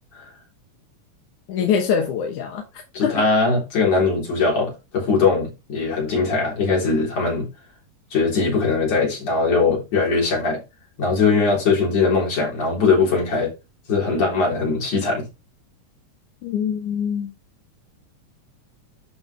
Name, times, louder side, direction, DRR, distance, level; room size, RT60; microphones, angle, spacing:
voice 1, 1.5-2.7 3.0-3.2 16.4-17.3, left 7 dB, 85° left, 2.6 m, -23 dB
voice 2, 2.9-7.5 8.1-10.6 11.0-13.5 13.9-15.3, left 4 dB, 60° left, 4.9 m, -20 dB
12.0 x 4.2 x 3.3 m
omnidirectional pair, 3.4 m